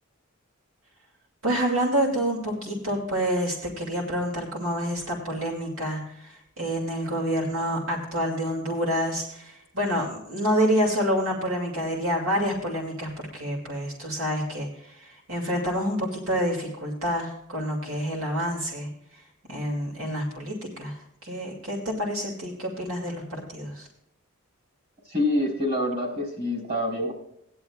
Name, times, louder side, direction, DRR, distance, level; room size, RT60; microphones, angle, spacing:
voice 1, 1.4-19.2 19.5-23.9, equal, 70° right, -2 dB, 2.5 m, -28 dB
voice 2, 25.1-27.1, left 1 dB, 45° right, 0 dB, 3.9 m, -26 dB
17.0 x 11.0 x 2.4 m, 0.76 s
head